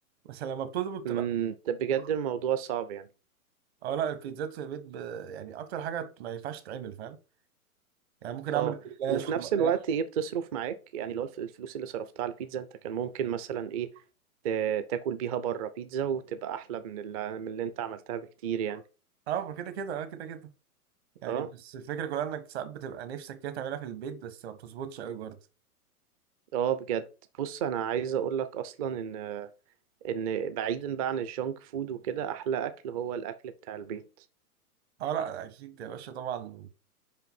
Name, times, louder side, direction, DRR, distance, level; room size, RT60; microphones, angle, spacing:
voice 1, 0.2-1.2 3.8-7.2 8.2-9.7 19.3-20.5 21.2-25.4 35.0-36.7, right 9 dB, 45° right, 1.2 m, -35 dB
voice 2, 1.0-3.1 8.5-8.7 9.1-13.9 14.4-18.8 21.3-21.5 26.5-27.1 27.4-29.5 30.0-34.0, right 8 dB, 25° right, 0.5 m, -32 dB
5.7 x 5.2 x 5.7 m
figure-of-eight pair, 115°, 45 cm